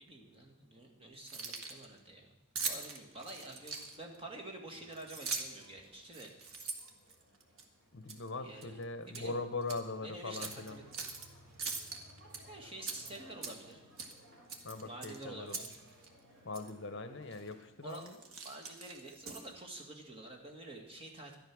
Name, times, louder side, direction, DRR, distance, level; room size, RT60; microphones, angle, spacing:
voice 1, 0.0-2.3 2.6-6.7 8.4-8.8 9.1-9.4 10.0-10.8 12.4-13.8 14.8-15.7 17.8-21.4, right 2 dB, 25° right, 1 dB, 2.0 m, -49 dB
Keys jangling, 1.1-1.9 2.6-4.2 4.9-5.7 6.1-7.6 8.1-8.3 8.6-9.3 9.6-9.8 10.3-11.3 11.6-12.4 12.8-13.7 14.0-14.2 14.5-15.8 16.0-16.1 16.5-16.7 17.3-17.5 17.9-19.6, right 5 dB, 80° right, 1.7 m, -42 dB
sound 1, 3.1-17.7, equal, 60° right, 3.5 m, -61 dB
voice 2, 7.9-10.8 14.6-15.6 16.4-18.2, left 3 dB, 60° left, 10 dB, 0.8 m, -41 dB
12.0 x 10.5 x 6.2 m, 1.0 s
head